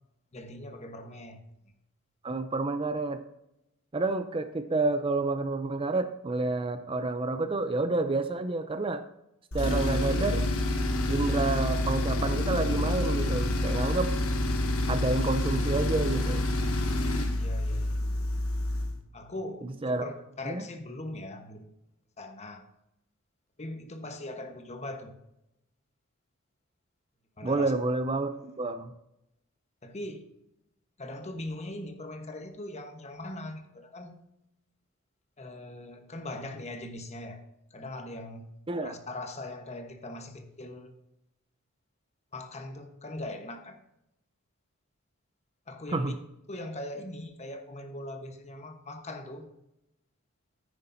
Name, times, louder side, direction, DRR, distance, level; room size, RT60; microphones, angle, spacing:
voice 1, 0.3-1.4 17.4-18.3 19.1-21.7 22.2-22.6 23.6-25.1 27.4-27.7 29.8-30.3 31.0-34.2 35.4-37.4 37.7-38.5 38.8-40.9 42.3-43.8 45.7-46.1 46.5-49.5, left 1 dB, 30° left, 6 dB, 1.1 m, -40 dB
voice 2, 2.2-3.2 3.9-9.0 9.5-10.4 11.1-14.1 14.9-16.5 19.6-20.1 20.4-20.6 27.4-28.9 38.7-39.0 45.9-46.2, right 3 dB, 25° right, 9 dB, 0.5 m, -29 dB
Tools, 9.5-19.0, left 1 dB, 75° left, 1.3 m, -28 dB
9.9 x 9.6 x 2.7 m, 0.84 s
head